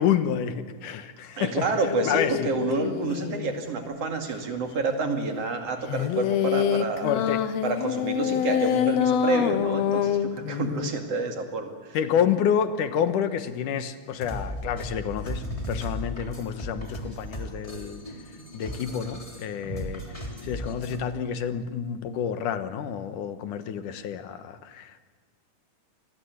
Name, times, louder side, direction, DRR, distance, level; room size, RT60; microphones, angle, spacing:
voice 1, 0.0-1.7 2.0-2.5 7.0-7.4 11.9-18.0 18.3-25.0, left 8 dB, 85° left, 10 dB, 2.8 m, -29 dB
voice 2, 1.4-7.1 7.6-12.0, right 3 dB, 55° right, 4 dB, 3.2 m, -29 dB
sound 1, 1.8-3.6 5.9-10.9, left 10 dB, 65° left, 1.9 m, -26 dB
sound 2, 14.0-21.0, left 1 dB, 10° left, 3.4 m, -36 dB
27.0 x 20.0 x 8.1 m, 1.4 s
omnidirectional pair, 3.5 m